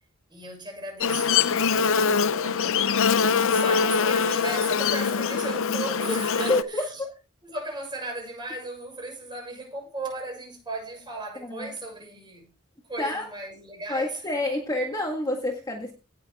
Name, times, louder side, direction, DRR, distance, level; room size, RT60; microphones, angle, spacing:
voice 1, 0.3-7.0 7.4-12.5 12.9-14.2, right 2 dB, 20° right, 6.6 m, -36 dB
Buzz, 1.0-6.6, left 6 dB, 65° left, 0.7 m, -23 dB
voice 2, 3.2-3.8 6.5-6.6 7.0-7.1 11.4-11.7 13.0-13.3 13.9-15.9, left 2 dB, 20° left, 1.8 m, -28 dB
17.5 x 6.9 x 3.6 m
head